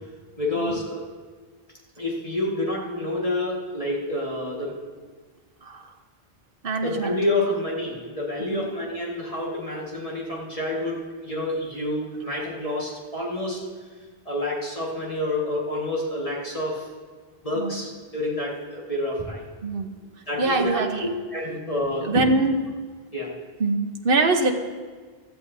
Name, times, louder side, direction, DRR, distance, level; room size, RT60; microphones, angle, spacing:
voice 1, 0.4-1.0 2.0-4.8 6.8-13.7 14.3-16.9 17.4-19.5 20.3-22.3 23.1-23.3, left 1 dB, 35° left, -4 dB, 1.8 m, -28 dB
voice 2, 6.6-7.2 8.4-8.7 17.5-17.8 19.6-20.0 20.4-21.1 22.0-22.6 23.6-24.5, right 3 dB, 65° right, 3 dB, 1.2 m, -24 dB
16.0 x 13.5 x 2.7 m, 1.5 s
omnidirectional pair, 1.0 m